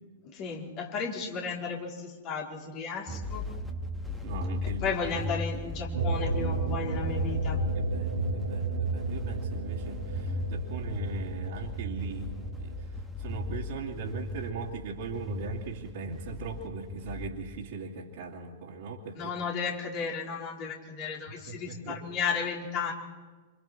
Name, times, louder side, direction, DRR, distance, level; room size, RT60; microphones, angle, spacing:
voice 1, 0.3-3.4 4.6-7.6 19.1-22.9, left 5 dB, 40° left, -2 dB, 4.6 m, -34 dB
sound 1, 3.1-17.3, left 2 dB, ahead, 2.1 m, -37 dB
voice 2, 4.2-5.0 6.8-6.9 7.2-7.4 7.7-12.7 13.2-19.3 21.4-22.0, right 4 dB, 55° right, -5 dB, 2.6 m, -39 dB
sound 2, 5.9-12.9, right 3 dB, 70° right, 2.0 m, -32 dB
26.5 x 26.5 x 4.6 m, 1.4 s
figure-of-eight pair, 105°, 0 cm